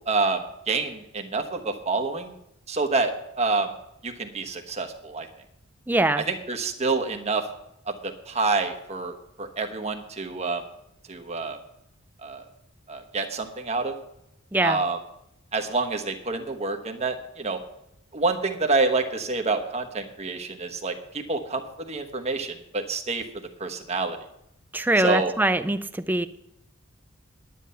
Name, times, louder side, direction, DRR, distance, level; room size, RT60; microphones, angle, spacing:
voice 1, 0.1-2.3 2.7-3.7 4.0-5.3 6.3-7.5 7.9-10.6 11.1-11.6 12.2-12.5 12.9-13.9 14.6-15.0 15.5-17.6 18.1-24.2 25.0-25.3, right 3 dB, 30° right, 5 dB, 1.2 m, -27 dB
voice 2, 5.9-6.3 14.5-14.8 24.7-26.3, right 2 dB, 10° right, 12 dB, 0.4 m, -23 dB
10.5 x 9.2 x 5.6 m, 0.80 s
head